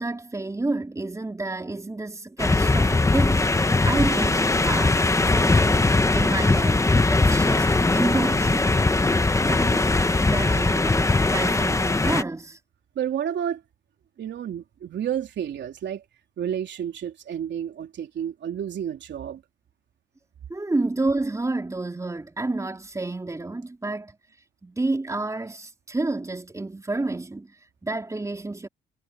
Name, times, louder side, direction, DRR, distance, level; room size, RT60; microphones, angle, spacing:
voice 1, 0.0-5.9 6.1-8.7 9.5-12.6 20.5-24.1 24.6-28.7, right 2 dB, 15° right, 3.8 m, -30 dB
sound 1, 2.4-12.2, left 2 dB, 15° left, 1.2 m, -20 dB
voice 2, 13.0-13.6 14.2-16.0 16.4-19.4, right 9 dB, 65° right, 3.5 m, -30 dB
cardioid pair, 90°, 20 cm